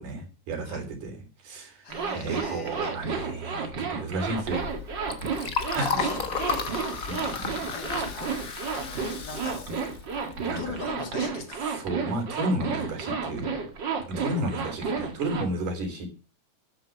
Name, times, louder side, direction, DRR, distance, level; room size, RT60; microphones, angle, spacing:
voice 1, 0.0-1.8 2.1-4.7 5.7-6.0 7.1-7.3 10.4-10.8 11.7-13.4 14.1-16.1, right 1 dB, 80° right, 4 dB, 4.9 m, -32 dB
voice 2, 1.8-2.9 5.7-8.3 8.7-9.7 10.1-11.6, left 4 dB, 30° left, 4 dB, 2.9 m, -41 dB
Zipper (clothing), 1.9-15.4, right 5 dB, 40° right, 2.2 m, -31 dB
Liquid, 4.3-11.0, left 6 dB, 65° left, 0.8 m, -34 dB
12.5 x 8.7 x 7.0 m, 0.37 s
omnidirectional pair, 3.7 m